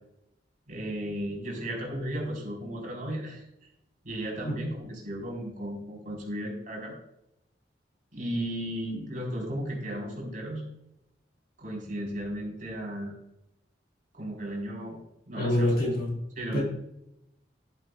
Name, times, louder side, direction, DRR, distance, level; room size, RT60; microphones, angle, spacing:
voice 1, 0.7-3.4 4.0-7.0 8.1-10.6 11.6-13.1 14.1-15.0 15.3-15.7 16.4-16.6, equal, 50° right, -1 dB, 3.8 m, -35 dB
voice 2, 15.3-16.1 16.5-16.6, left 1 dB, 60° left, -1 dB, 3.7 m, -26 dB
11.5 x 11.0 x 2.3 m, 0.82 s
head